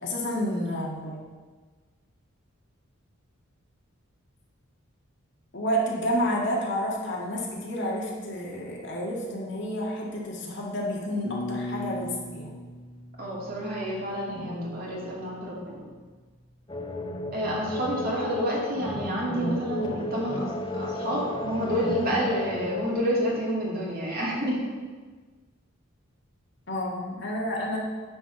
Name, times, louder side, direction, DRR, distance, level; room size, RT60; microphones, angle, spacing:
voice 1, 0.0-1.2 5.5-12.5 14.3-14.7 22.6-22.7 26.7-27.8, equal, 55° left, -3 dB, 2.0 m, -30 dB
sound 1, 11.2-14.2, left 1 dB, 80° right, 3.2 m, -37 dB
voice 2, 13.2-15.8 17.3-24.6, equal, 45° right, -5 dB, 2.7 m, -29 dB
sound 2, 16.7-22.9, left 1 dB, 20° left, 0.6 m, -34 dB
9.9 x 4.6 x 7.0 m, 1.4 s
head